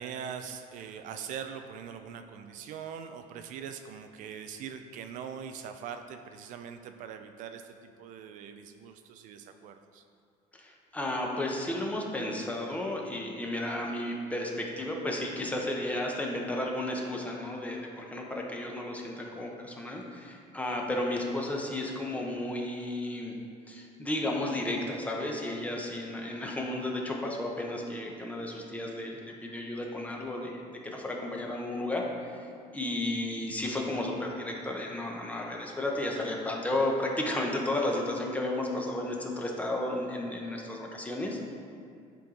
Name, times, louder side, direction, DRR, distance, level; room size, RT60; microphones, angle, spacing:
voice 1, 0.0-10.0, right 7 dB, 60° right, 7 dB, 0.4 m, -42 dB
voice 2, 10.5-23.3 23.7-32.5 32.7-41.5, left 1 dB, 10° left, -1 dB, 0.9 m, -33 dB
10.5 x 4.5 x 3.8 m, 2.3 s
cardioid pair, 145°, 15 cm